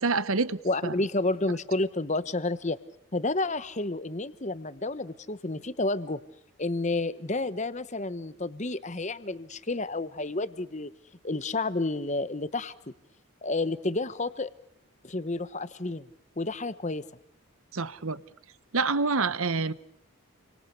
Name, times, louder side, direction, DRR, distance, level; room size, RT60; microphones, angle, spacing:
voice 1, 0.0-0.9 17.7-18.2 18.7-19.7, right 4 dB, 70° right, 1.1 m, -27 dB
voice 2, 0.6-2.8 3.1-6.2 6.6-10.9 11.2-12.7 13.4-14.5 15.0-16.1 16.4-17.0, left 2 dB, 30° left, 1.0 m, -30 dB
30.0 x 25.0 x 6.8 m
head